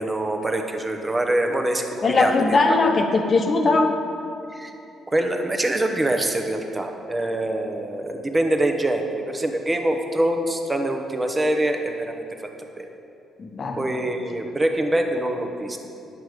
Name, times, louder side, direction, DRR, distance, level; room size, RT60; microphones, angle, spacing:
voice 1, 0.0-2.6 4.5-4.8 5.1-12.3 12.8-12.9 13.8-15.8, right 1 dB, 20° right, 4 dB, 1.0 m, -24 dB
voice 2, 2.0-3.9 13.4-14.0, left 3 dB, 45° left, 5 dB, 1.0 m, -20 dB
10.5 x 6.6 x 4.9 m, 2.7 s
cardioid pair, 90°, 0 cm